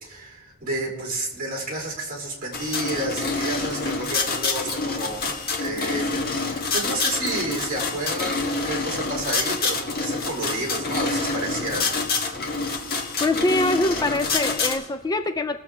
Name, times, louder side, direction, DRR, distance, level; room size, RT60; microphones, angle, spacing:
voice 1, 0.0-5.2 5.6-6.1 6.5-12.0, right 2 dB, 40° right, -2 dB, 3.2 m, -30 dB
sound 1, 2.5-14.8, left 3 dB, 45° left, 1.6 m, -27 dB
voice 2, 13.2-15.6, left 2 dB, 20° left, 9 dB, 0.3 m, -24 dB
20.5 x 7.2 x 3.6 m, 1.2 s
head